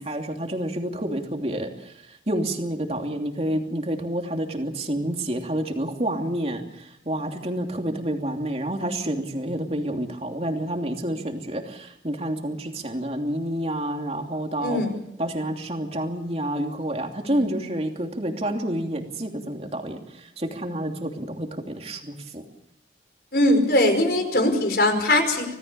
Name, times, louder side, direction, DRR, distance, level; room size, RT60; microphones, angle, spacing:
voice 1, 0.0-14.8 15.2-22.4, right 1 dB, 35° right, 3 dB, 2.9 m, -29 dB
voice 2, 14.6-14.9 17.3-17.4 23.3-25.5, left 1 dB, 60° left, 6 dB, 5.1 m, -21 dB
26.0 x 18.0 x 6.9 m, 0.82 s
head